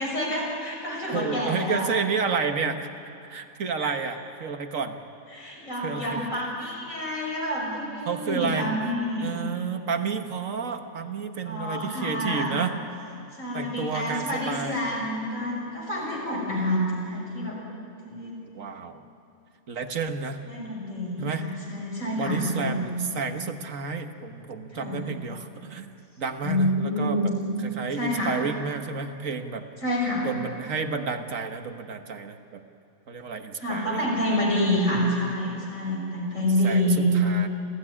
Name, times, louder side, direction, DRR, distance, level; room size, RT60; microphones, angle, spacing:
voice 1, 0.0-1.9 3.8-4.0 5.3-9.4 11.4-12.6 13.3-17.6 18.0-18.4 20.4-22.9 24.7-25.1 26.4-27.3 28.0-28.4 29.8-30.3 33.6-37.1, left 1 dB, 70° left, -3 dB, 6.6 m, -28 dB
voice 2, 1.1-2.9 3.2-5.0 5.7-6.4 8.0-8.7 9.2-12.7 13.5-14.8 18.5-19.0 19.7-20.4 21.2-21.5 22.2-25.9 26.2-27.3 27.6-29.6 30.2-32.6 33.1-34.0 36.6-37.5, right 5 dB, 75° right, 6 dB, 1.6 m, -31 dB
27.5 x 15.0 x 9.9 m, 2.7 s
omnidirectional pair, 1.4 m